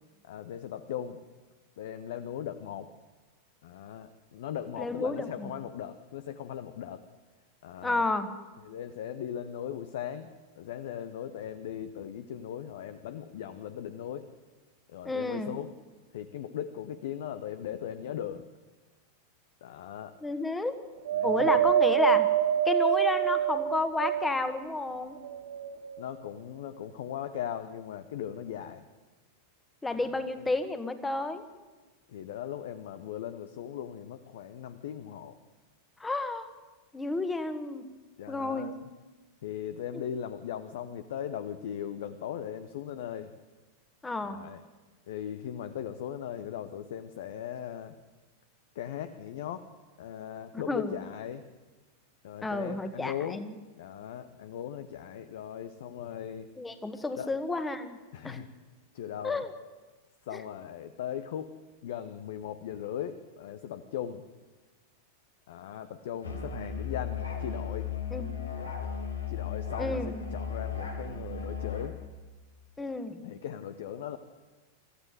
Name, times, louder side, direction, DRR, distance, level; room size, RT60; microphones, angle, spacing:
voice 1, 0.2-1.2 1.8-2.9 3.6-7.0 7.6-8.0 8.6-10.3 10.6-14.3 14.9-15.7 16.1-18.5 19.6-20.1 21.1-21.7 26.0-28.9 30.0-30.5 32.1-35.4 38.2-38.9 39.4-43.3 44.2-44.6 45.1-47.9 48.7-49.7 50.0-51.4 52.2-53.4 53.8-56.5 57.2-57.3 58.1-58.5 58.9-59.4 60.2-61.5 61.8-64.2 65.5-67.9 69.3-72.0 73.2-74.2, left 9 dB, 55° left, 11 dB, 0.9 m, -38 dB
voice 2, 4.8-5.5 7.8-8.3 15.0-15.5 20.2-20.8 21.2-22.3 22.6-25.2 29.8-31.4 36.0-36.5 36.9-37.9 38.3-38.8 44.0-44.4 50.7-50.9 52.4-53.6 56.6-58.0 58.2-58.4 59.2-59.5 60.3-60.4 68.1-68.3 69.8-70.2 72.8-73.3, left 2 dB, 10° left, 10 dB, 1.6 m, -31 dB
Wind, 21.0-24.6 25.2-26.2 27.0-27.1, right 10 dB, 65° right, 2.1 m, -26 dB
Musical instrument, 66.2-71.9, left 6 dB, 75° left, 2.7 m, -35 dB
24.5 x 14.5 x 8.0 m, 1.2 s
figure-of-eight pair, 90°, 0 cm